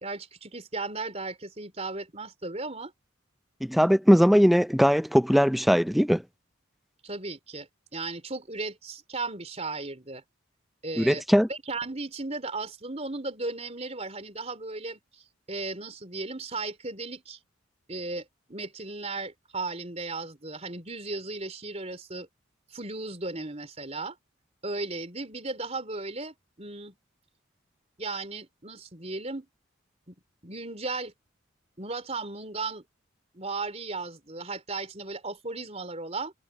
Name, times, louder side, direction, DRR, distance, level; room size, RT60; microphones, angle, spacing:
voice 1, 0.0-2.9 7.0-10.2 10.8-11.2 11.5-15.0 15.5-17.4 17.9-22.3 22.7-24.2 24.6-26.9 28.0-29.5 30.1-30.2 30.4-31.1 31.8-32.8 33.3-36.3, right 3 dB, 30° right, 4.4 m, -36 dB
voice 2, 3.6-6.2 11.0-11.5, equal, ahead, 0.4 m, -20 dB
head